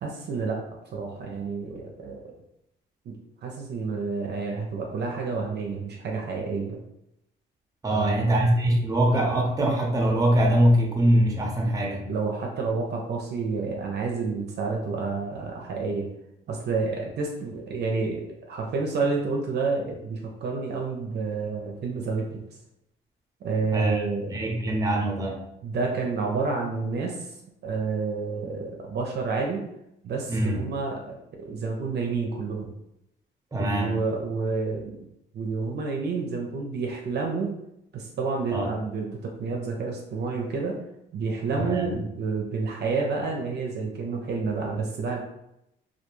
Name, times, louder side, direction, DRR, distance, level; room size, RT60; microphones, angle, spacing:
voice 1, 0.0-0.6 0.9-2.2 3.1-6.8 7.9-8.4 12.1-16.1 16.5-22.4 23.4-24.3 25.6-27.3 27.6-29.6 30.0-32.7 33.6-35.0 35.3-37.5 37.9-40.8 41.1-45.2, right 4 dB, 60° right, 0 dB, 0.5 m, -29 dB
voice 2, 7.8-12.1 23.7-24.0 24.3-25.4 30.3-30.6 33.5-34.0 38.5-38.7 41.5-41.9, right 1 dB, 15° right, 0 dB, 0.7 m, -23 dB
2.3 x 2.2 x 3.0 m, 0.83 s
cardioid pair, 90°, 20 cm